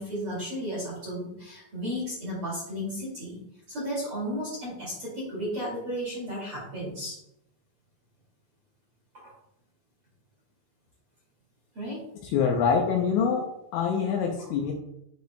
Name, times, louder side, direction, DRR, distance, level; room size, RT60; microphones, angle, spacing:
voice 1, 0.0-3.4 3.7-7.2 9.1-9.3 11.7-12.0 14.4-14.5, equal, 40° right, -7 dB, 2.1 m, -34 dB
voice 2, 12.3-14.7, left 6 dB, 80° left, 1 dB, 2.7 m, -25 dB
10.5 x 4.9 x 2.3 m, 0.80 s
omnidirectional pair, 5.7 m